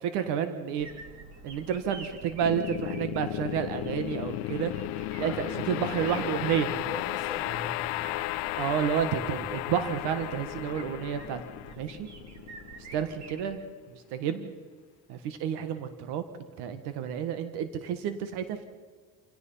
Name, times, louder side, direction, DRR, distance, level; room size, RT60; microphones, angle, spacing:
voice 1, 0.0-0.9 1.4-4.7 5.2-6.7 8.6-11.4 11.8-12.1 12.9-13.6 13.9-14.5 15.1-18.6, right 8 dB, 85° right, 10 dB, 1.6 m, -30 dB
sound 1, 0.8-13.4, right 3 dB, 45° right, 2.9 m, -48 dB
sound 2, 2.4-13.6, left 20 dB, 75° left, 0.6 m, -34 dB
voice 2, 5.2-8.1, left 1 dB, 10° right, -2 dB, 7.9 m, -42 dB
27.0 x 17.5 x 5.7 m, 1.5 s
cardioid pair, 150°, 39 cm